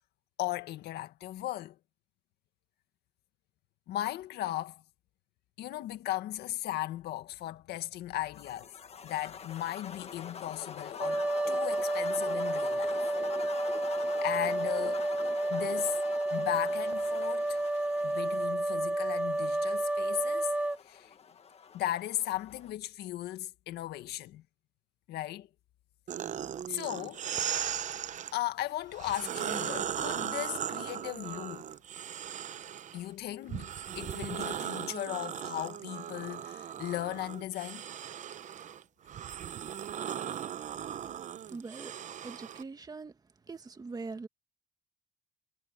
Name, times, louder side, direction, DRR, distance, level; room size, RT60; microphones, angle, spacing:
voice 1, 0.4-1.8 3.9-4.8 5.6-8.7 9.0-13.0 14.2-15.1 15.5-16.0 16.3-17.6 18.0-20.5 20.8-21.1 21.7-24.4 25.1-25.5 26.7-27.3 28.3-31.6 32.9-33.7 33.9-37.9, left 14 dB, 75° left, 1.9 m, -36 dB
sound 1, 8.3-22.7, left 6 dB, 40° left, 1.7 m, -44 dB
sound 2, 11.0-20.8, right 1 dB, 5° right, 0.6 m, -31 dB
sound 3, 26.1-28.3 28.9-33.0 33.5-42.6, right 9 dB, 45° right, 0.8 m, -38 dB
voice 2, 41.5-41.9 42.2-43.2 43.5-44.3, right 4 dB, 20° right, 1.7 m, -42 dB
cardioid pair, 110°, 17 cm